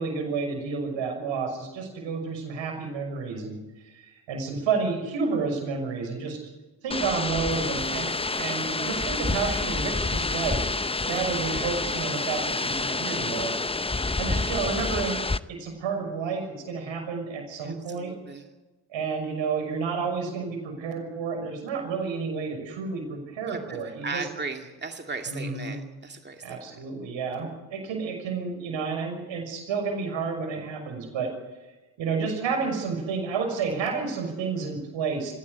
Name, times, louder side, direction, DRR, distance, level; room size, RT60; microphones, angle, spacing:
voice 1, 0.0-3.6 3.8-6.4 6.8-10.7 11.1-13.5 14.2-15.2 15.5-18.1 18.9-24.3 25.3-25.7 26.4-31.3 32.0-35.3, right 5 dB, 75° right, 4 dB, 6.1 m, -30 dB
sound 1, 6.9-15.4, left 3 dB, 10° left, 0.7 m, -28 dB
voice 2, 17.6-18.5 23.5-23.8 24.0-26.8, right 4 dB, 25° right, 4 dB, 2.3 m, -37 dB
22.5 x 17.0 x 8.2 m, 1.2 s
hypercardioid pair, 45°, 46 cm